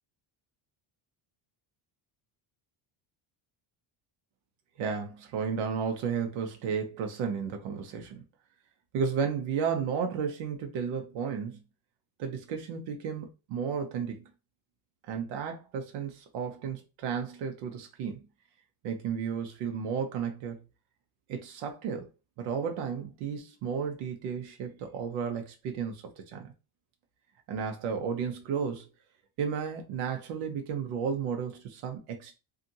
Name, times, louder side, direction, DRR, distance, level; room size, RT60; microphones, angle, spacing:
voice 1, 4.8-8.2 8.9-11.6 12.2-14.2 15.1-18.2 18.8-20.6 21.3-22.1 22.4-26.0 26.3-26.5 27.5-28.9 29.4-32.4, right 6 dB, 85° right, 0.8 m, -33 dB
2.7 x 2.4 x 2.7 m
cardioid pair, 175°, 49 cm